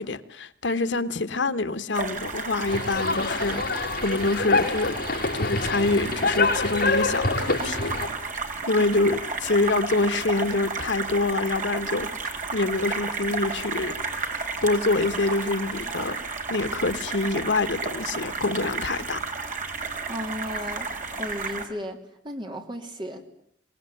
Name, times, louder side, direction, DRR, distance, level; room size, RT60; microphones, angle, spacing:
voice 1, 0.0-5.0 5.3-8.0 8.7-13.9 14.6-16.2 16.5-19.2, left 2 dB, 85° left, 1.4 m, -26 dB
sound 1, 1.9-21.6, right 4 dB, 45° right, 3.8 m, -32 dB
sound 2, 2.7-8.1, left 3 dB, 55° left, 5.3 m, -26 dB
voice 2, 20.1-22.0 22.2-23.2, equal, 25° right, 3.4 m, -34 dB
25.0 x 20.0 x 9.2 m
head